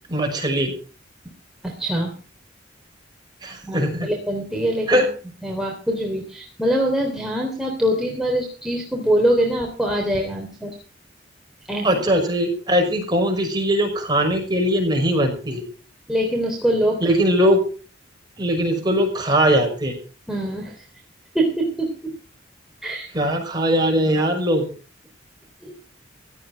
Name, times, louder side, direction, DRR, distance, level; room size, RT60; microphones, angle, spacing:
voice 1, 0.1-0.7 3.4-4.1 4.9-5.1 11.8-15.6 17.0-17.6 18.4-19.9 23.1-24.6, equal, 25° right, 2 dB, 5.9 m, -20 dB
voice 2, 1.6-2.1 3.6-5.0 5.4-10.7 11.7-11.9 16.1-17.0 20.3-20.7 21.3-22.1 22.8-23.1 25.6-25.7, right 1 dB, ahead, -1 dB, 3.4 m, -23 dB
16.0 x 13.5 x 4.6 m, 0.38 s
head